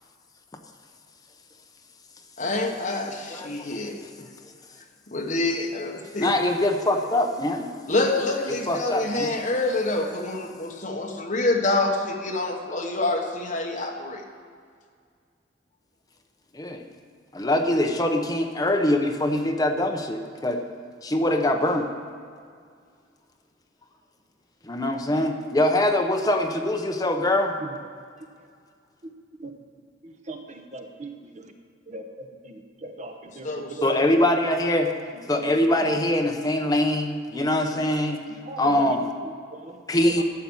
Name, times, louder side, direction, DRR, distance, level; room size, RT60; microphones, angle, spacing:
voice 1, 2.4-4.0 5.1-6.3 7.9-14.2 33.4-34.0, left 2 dB, 40° left, 1 dB, 1.4 m, -27 dB
voice 2, 3.3-3.7 6.2-7.7 8.5-9.3 16.5-16.8 17.3-20.6 21.0-21.9 24.6-27.6 33.8-34.9 35.3-38.2 38.6-39.0 39.9-40.2, left 1 dB, 20° left, 4 dB, 0.8 m, -23 dB
voice 3, 30.0-31.1 31.4-31.5 31.9-33.9 35.1-35.9 37.5-37.7 38.1-40.2, right 2 dB, 40° right, 5 dB, 1.0 m, -40 dB
11.5 x 7.6 x 7.2 m, 2.1 s
head